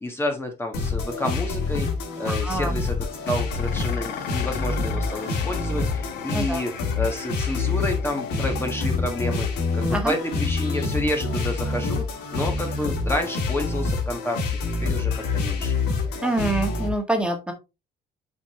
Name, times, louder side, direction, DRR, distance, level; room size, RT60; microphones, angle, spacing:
voice 1, 0.0-1.9 2.2-3.0 3.3-15.7, left 1 dB, 15° left, 2 dB, 1.5 m, -30 dB
sound 1, 0.7-16.9, left 4 dB, 85° left, 2.6 m, -27 dB
voice 2, 2.3-2.8 6.3-6.6 9.9-10.1 16.2-17.5, right 2 dB, 5° right, 4 dB, 1.7 m, -26 dB
Dishes pots and pans, 3.5-12.3, left 8 dB, 70° left, 1.3 m, -40 dB
8.2 x 5.3 x 3.0 m, 0.26 s
cardioid pair, 110°, 17 cm